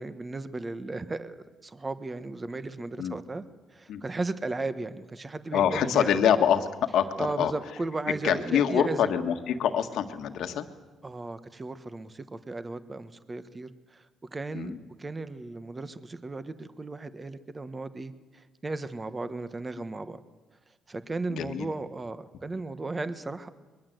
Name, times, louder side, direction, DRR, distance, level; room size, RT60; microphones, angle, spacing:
voice 1, 0.0-3.4 3.7-6.2 7.2-9.1 11.0-14.1 14.3-20.2 20.9-23.5, right 3 dB, 25° right, 12 dB, 1.3 m, -35 dB
voice 2, 5.5-7.5 8.2-10.7 14.5-14.8 21.3-21.7, left 9 dB, 80° left, 7 dB, 1.7 m, -25 dB
22.0 x 22.0 x 8.0 m, 1.3 s
cardioid pair, 90°, 0 cm